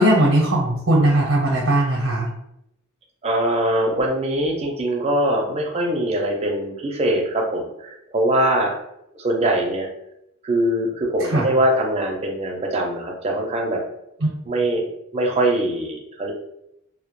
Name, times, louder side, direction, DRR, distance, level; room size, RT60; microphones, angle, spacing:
voice 1, 0.0-2.3 11.2-11.5 14.2-14.3, right 1 dB, 75° right, -2 dB, 0.6 m, -18 dB
voice 2, 3.2-8.7 9.2-9.9 10.4-13.8 14.5-14.9 15.1-16.3, right 1 dB, 30° right, 0 dB, 0.4 m, -22 dB
2.1 x 2.1 x 2.9 m, 0.81 s
head